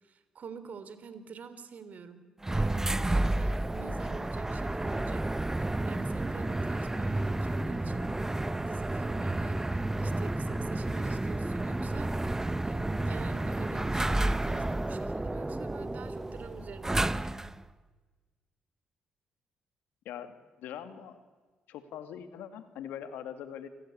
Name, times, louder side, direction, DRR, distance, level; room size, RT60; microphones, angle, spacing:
voice 1, 0.0-2.3 2.5-8.1 8.5-17.1, right 6 dB, 55° right, 12 dB, 3.3 m, -47 dB
sound 1, 2.4-17.6, right 2 dB, 15° right, 0.9 m, -31 dB
voice 2, 20.1-21.2 21.7-23.7, left 9 dB, 75° left, 10 dB, 2.0 m, -42 dB
29.0 x 20.0 x 8.5 m, 1.4 s
hypercardioid pair, 55°, 3 cm